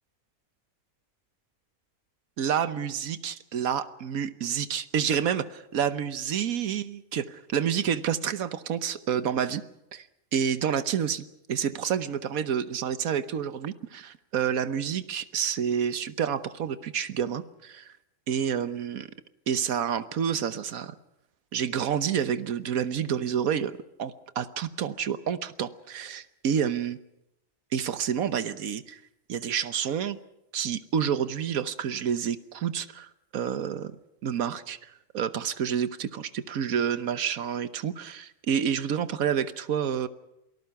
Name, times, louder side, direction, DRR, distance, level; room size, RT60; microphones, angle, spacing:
voice 1, 2.4-9.6 9.9-10.1 10.3-17.9 18.3-19.1 19.5-20.9 21.5-23.7 24.0-27.0 27.7-29.0 29.3-30.2 30.5-34.0 34.2-40.1, right 8 dB, 75° right, 13 dB, 1.4 m, -29 dB
28.0 x 19.0 x 5.8 m, 0.84 s
omnidirectional pair, 1.5 m